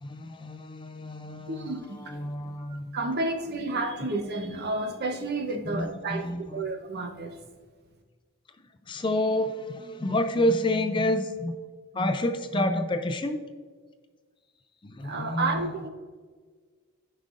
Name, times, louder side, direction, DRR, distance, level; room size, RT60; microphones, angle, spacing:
voice 1, 0.0-1.7 2.0-2.9 5.7-6.6 8.9-11.5 11.9-13.4 14.8-15.7, left 1 dB, 20° left, 7 dB, 0.4 m, -28 dB
voice 2, 1.5-2.2 2.6-6.3 6.5-7.4 15.0-15.9, right 2 dB, 50° right, 4 dB, 0.9 m, -31 dB
14.0 x 5.3 x 2.5 m, 1.5 s
head